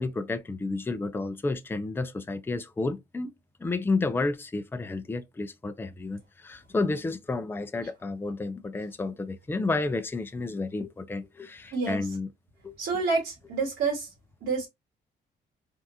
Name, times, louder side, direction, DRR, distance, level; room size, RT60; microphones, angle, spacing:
voice 1, 0.0-3.3 3.6-12.3 12.6-13.0, left 3 dB, 10° left, 0.4 m, -31 dB
voice 2, 12.8-14.1 14.4-14.7, right 4 dB, 70° right, 1.8 m, -28 dB
3.5 x 2.5 x 2.7 m
cardioid pair, 90°, 20 cm